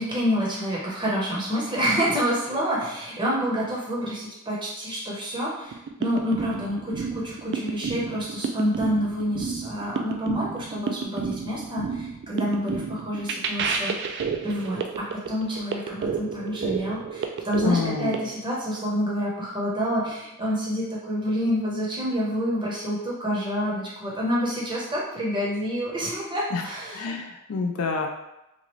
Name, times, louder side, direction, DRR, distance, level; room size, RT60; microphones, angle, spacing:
voice 1, 0.0-14.1 14.4-27.1, equal, 20° right, -5 dB, 0.7 m, -28 dB
sound 1, 5.7-18.2, right 5 dB, 55° right, 0.3 m, -31 dB
voice 2, 17.6-18.3 26.5-26.6 26.9-28.1, left 4 dB, 70° left, 3 dB, 0.4 m, -27 dB
2.9 x 2.4 x 3.0 m, 0.93 s
head